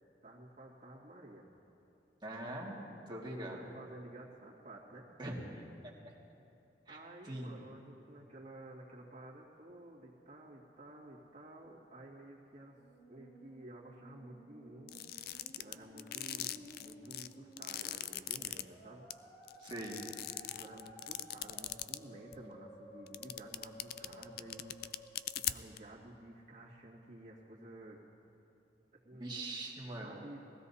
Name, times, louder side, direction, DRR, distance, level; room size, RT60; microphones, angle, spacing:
voice 1, 0.2-1.5 3.5-5.1 6.9-12.8 13.1-15.0 15.6-19.1 20.4-28.0 28.9-29.5 30.0-30.4, right 1 dB, 40° right, -4 dB, 2.0 m, -52 dB
voice 2, 2.2-2.8 3.1-3.6 5.2-5.6 6.9-7.0 7.2-7.6 19.6-20.0 29.1-30.2, right 1 dB, 25° right, -3 dB, 2.0 m, -42 dB
Musical instrument, 12.7-25.7, equal, 80° left, 2.9 m, -56 dB
sound 1, 14.9-18.6 19.1-19.2 19.5-22.0 22.3-22.4 23.1-25.8, left 13 dB, 60° left, 0.3 m, -39 dB
21.0 x 16.0 x 2.8 m, 2.7 s
head